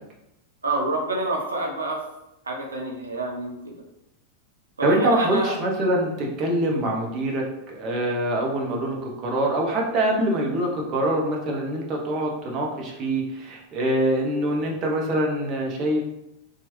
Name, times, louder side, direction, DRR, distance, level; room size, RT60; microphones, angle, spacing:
voice 1, 0.6-2.0 2.4-3.8 4.8-5.6, right 2 dB, 75° right, 0 dB, 0.6 m, -28 dB
voice 2, 4.8-16.0, right 1 dB, 35° right, -1 dB, 0.7 m, -24 dB
2.9 x 2.3 x 3.0 m, 0.87 s
figure-of-eight pair, 90°, 0 cm